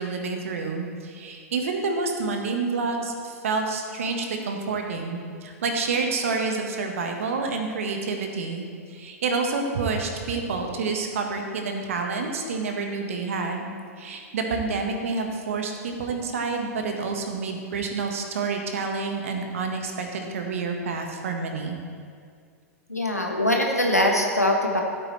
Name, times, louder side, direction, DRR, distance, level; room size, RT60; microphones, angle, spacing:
voice 1, 0.0-13.7 14.0-21.8, right 4 dB, 60° right, 3 dB, 1.4 m, -28 dB
voice 2, 22.9-24.8, left 1 dB, 90° left, 1 dB, 1.4 m, -22 dB
14.5 x 8.4 x 3.3 m, 2.1 s
figure-of-eight pair, 95°, 8 cm